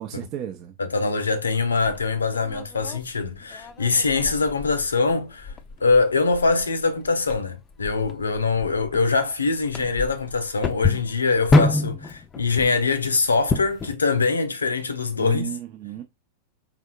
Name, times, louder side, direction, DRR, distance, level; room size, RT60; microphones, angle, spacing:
voice 1, 0.0-0.8 15.2-16.0, right 11 dB, 40° right, 0.6 m, -34 dB
voice 2, 0.8-5.5 5.8-15.5, left 4 dB, 75° left, 0.6 m, -23 dB
sound 1, 1.8-13.9, left 3 dB, 25° left, 0.5 m, -29 dB
4.4 x 3.5 x 2.3 m
figure-of-eight pair, 90°, 0 cm